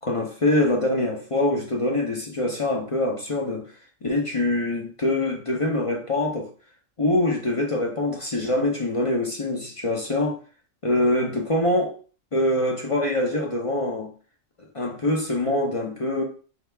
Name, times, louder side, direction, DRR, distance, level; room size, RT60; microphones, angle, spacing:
voice 1, 0.0-3.7 4.0-6.5 7.0-10.4 10.8-12.0 12.3-14.1 14.7-16.2, left 1 dB, 40° left, 0.5 m, -24 dB
4.7 x 2.3 x 3.3 m
omnidirectional pair, 1.4 m